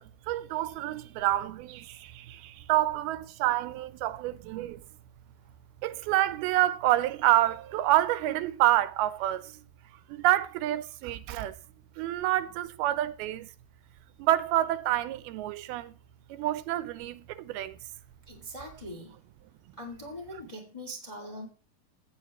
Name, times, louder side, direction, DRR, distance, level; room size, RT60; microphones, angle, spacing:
voice 1, 0.0-4.8 5.8-9.5 10.1-11.5 12.0-13.5 14.2-15.9 16.3-17.8, right 14 dB, 80° right, 2.5 m, -28 dB
voice 2, 18.2-19.2 19.8-21.5, equal, 15° left, 1.3 m, -41 dB
15.5 x 8.1 x 3.0 m
omnidirectional pair, 4.5 m